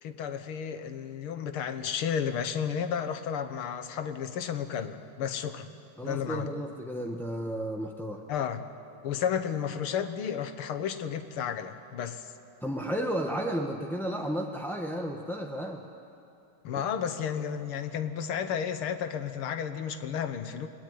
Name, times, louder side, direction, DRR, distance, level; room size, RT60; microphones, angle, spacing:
voice 1, 0.0-5.7 6.0-6.5 8.3-8.7 9.0-12.3 16.6-20.7, left 8 dB, 90° left, 9 dB, 2.1 m, -32 dB
voice 2, 6.0-8.2 12.6-15.8 16.7-16.8, equal, ahead, 1 dB, 0.7 m, -33 dB
27.5 x 20.0 x 9.7 m, 2.7 s
omnidirectional pair, 2.3 m